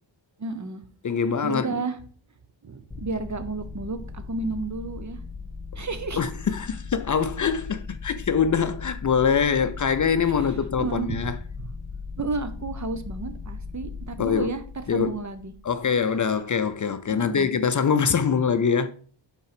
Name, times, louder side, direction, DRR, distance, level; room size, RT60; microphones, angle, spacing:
voice 1, 0.4-0.8 1.4-2.0 2.6-5.2 5.8-6.2 10.3-10.5 10.8-11.2 11.6-11.7 12.2-14.6 14.9-15.5 17.1-17.5, right 3 dB, 40° right, 0.8 m, -31 dB
voice 2, 1.0-1.8 6.2-11.4 14.2-14.5 14.9-15.2 15.6-18.9, left 6 dB, 40° left, 0.5 m, -24 dB
sound 1, 2.9-16.2, left 4 dB, 15° left, 2.1 m, -38 dB
5.4 x 4.3 x 5.1 m
wide cardioid pair, 80°, 46 cm